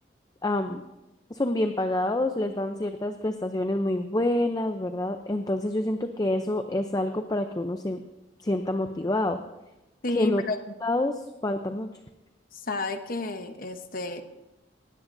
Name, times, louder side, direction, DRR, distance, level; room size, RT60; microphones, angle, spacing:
voice 1, 0.4-0.8 1.3-8.0 8.4-9.4 10.1-10.4 10.8-11.9, left 1 dB, 20° left, 7 dB, 0.5 m, -27 dB
voice 2, 10.0-10.6 12.5-14.2, left 3 dB, 50° left, 7 dB, 1.0 m, -30 dB
19.5 x 16.0 x 2.7 m, 0.98 s
head